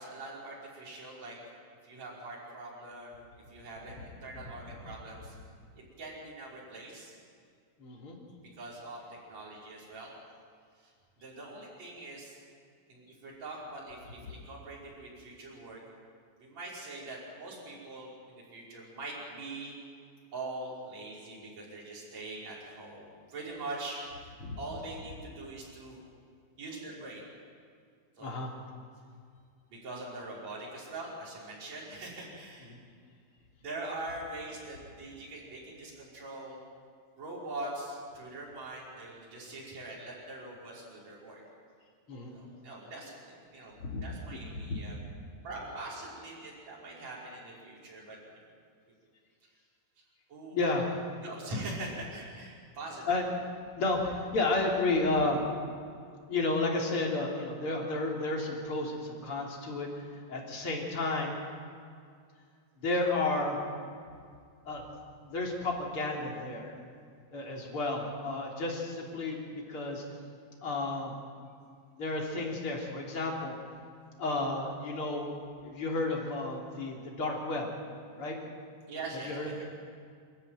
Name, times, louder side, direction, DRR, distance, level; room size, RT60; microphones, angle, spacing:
voice 1, 0.0-1.4 1.8-3.2 3.5-5.4 5.8-7.2 8.6-9.0 9.3-10.1 10.8-10.9 11.2-12.4 12.9-15.8 16.4-19.7 20.3-24.3 24.6-26.0 26.6-27.2 28.2-28.3 29.7-32.7 33.6-36.6 37.2-41.4 42.3-44.9 45.4-48.2 50.3-50.6 51.2-53.1 67.4-67.6 78.9-79.7, right 2 dB, 35° right, -5 dB, 6.5 m, -43 dB
voice 2, 7.8-8.2 24.4-24.5 28.2-28.5 32.7-32.8 42.1-42.3 43.8-44.0 44.5-44.8 50.5-51.0 53.1-53.2 53.8-55.5 56.3-59.9 60.3-61.3 62.8-63.6 64.6-65.0 65.2-66.7 67.3-70.0 70.6-71.1 71.9-73.5 74.2-75.4 75.6-77.7 78.2-78.4 79.3-79.5, left 2 dB, 30° left, -1 dB, 3.5 m, -32 dB
28.5 x 13.0 x 9.2 m, 2.2 s
omnidirectional pair, 5.6 m